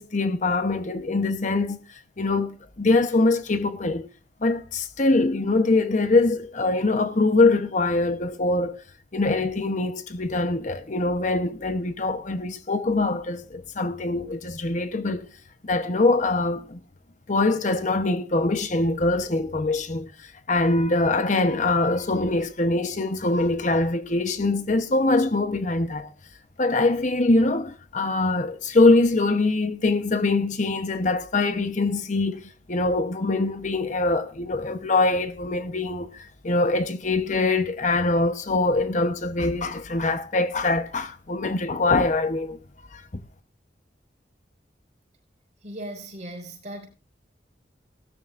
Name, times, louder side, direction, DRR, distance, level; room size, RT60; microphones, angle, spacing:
voice 1, 0.0-1.8 2.2-4.1 4.4-8.8 9.1-15.3 15.6-16.8 17.3-26.1 26.6-32.4 32.7-42.6 42.9-43.2, left 2 dB, 45° left, 0.9 m, -23 dB
voice 2, 45.6-46.9, right 1 dB, 40° right, 5.1 m, -37 dB
18.0 x 13.0 x 2.5 m
head